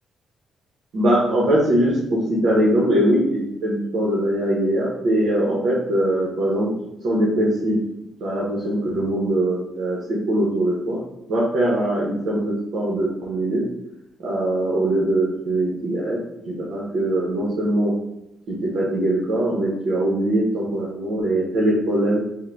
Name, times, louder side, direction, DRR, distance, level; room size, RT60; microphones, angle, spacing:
voice 1, 0.9-6.7 7.0-7.8 8.2-10.0 10.3-11.0 11.3-13.6 14.2-16.2 16.5-17.9 18.5-22.2, right 1 dB, 75° right, -5 dB, 0.9 m, -21 dB
3.7 x 2.1 x 4.4 m, 0.86 s
cardioid pair, 130°, 0 cm